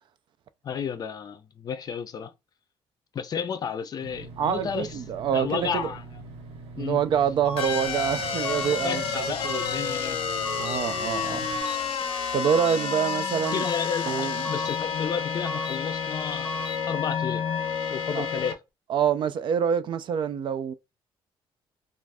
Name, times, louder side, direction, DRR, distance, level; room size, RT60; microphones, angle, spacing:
voice 1, 0.6-2.3 3.1-5.0 5.3-6.0 6.8-7.0 8.7-10.2 13.5-17.5 17.9-18.6, left 7 dB, 40° left, 0.4 m, -32 dB
sound 1, 4.0-11.6, right 3 dB, 80° right, 0.7 m, -43 dB
voice 2, 4.4-5.9 6.8-9.6 10.6-11.5 12.0-13.7 14.1-14.4 18.2-18.3 18.9-20.7, right 8 dB, 55° right, 0.3 m, -26 dB
sound 2, 7.4-7.8 8.4-8.8 9.4-9.8 10.4-10.8 11.4-11.8 12.4-12.8 13.4-13.8 14.4-14.8 15.4-15.8 16.4-16.8, equal, 5° right, 0.7 m, -35 dB
sound 3, 7.6-18.5, left 6 dB, 90° left, 0.6 m, -30 dB
2.5 x 2.4 x 3.3 m
cardioid pair, 145°, 10 cm